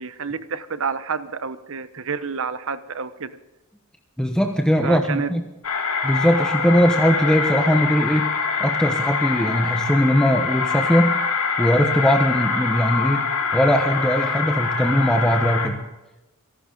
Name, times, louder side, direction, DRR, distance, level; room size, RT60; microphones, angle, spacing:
voice 1, 0.0-3.3 4.8-5.3, right 5 dB, 65° right, 12 dB, 1.0 m, -29 dB
voice 2, 4.2-5.4 6.0-8.3 8.6-11.2 11.6-13.3 13.5-15.8, equal, 5° left, 3 dB, 1.1 m, -20 dB
sound 1, 5.6-15.7, left 5 dB, 75° left, 2.5 m, -24 dB
28.0 x 12.0 x 4.0 m, 1.0 s
head